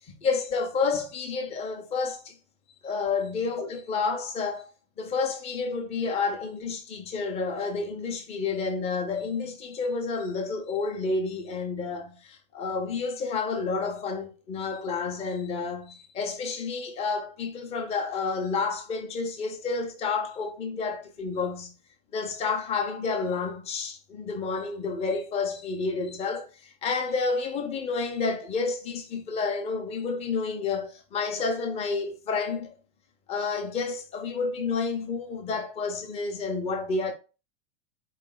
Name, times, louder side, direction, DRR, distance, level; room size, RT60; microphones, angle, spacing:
voice 1, 0.1-2.3 2.8-4.7 5.0-21.7 22.1-32.7 33.3-37.1, left 4 dB, 15° left, 0.6 m, -30 dB
4.4 x 3.2 x 3.8 m
supercardioid pair, 160°, 36 cm